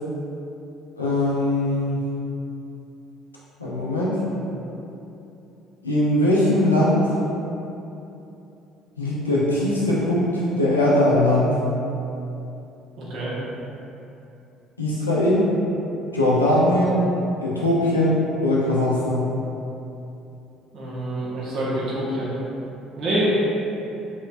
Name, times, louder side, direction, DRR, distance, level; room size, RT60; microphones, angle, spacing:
voice 1, 1.0-2.0 3.6-4.2 5.8-7.1 9.0-11.6 14.8-15.5 16.1-17.0 17.4-19.3, left 1 dB, 90° left, -7 dB, 0.5 m, -20 dB
voice 2, 13.0-13.3 20.7-22.3 22.9-23.2, right 1 dB, 55° right, -8 dB, 1.0 m, -27 dB
3.1 x 3.0 x 2.4 m, 2.9 s
figure-of-eight pair, 55°, 0 cm